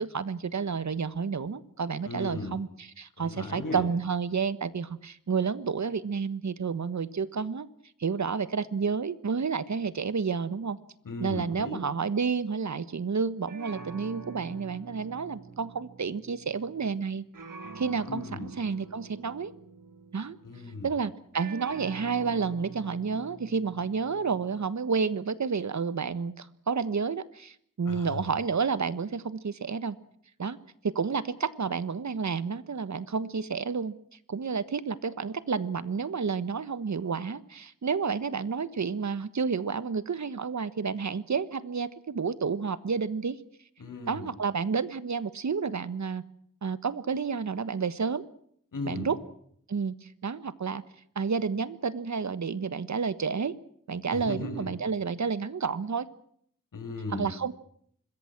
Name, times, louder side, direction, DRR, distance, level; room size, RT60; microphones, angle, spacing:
voice 1, 0.0-7.7 8.0-10.8 11.2-17.2 17.7-19.5 20.1-20.4 20.8-30.0 30.4-30.6 30.8-33.9 34.3-43.4 44.1-46.2 46.6-48.2 48.9-49.2 49.7-50.8 51.1-53.5 53.9-56.1 57.1-57.5, right 5 dB, 60° right, 15 dB, 1.4 m, -30 dB
voice 2, 2.0-2.6 3.2-3.9 11.0-11.8 18.0-18.5 20.4-20.9 27.9-28.2 43.8-44.3 48.7-49.1 54.1-54.7 56.7-57.3, left 3 dB, 85° left, 6 dB, 6.2 m, -37 dB
sound 1, 13.5-17.0 17.3-20.9 21.3-24.6, right 4 dB, 85° right, 2.2 m, -46 dB
26.0 x 21.5 x 6.1 m, 0.66 s
wide cardioid pair, 85°, 31 cm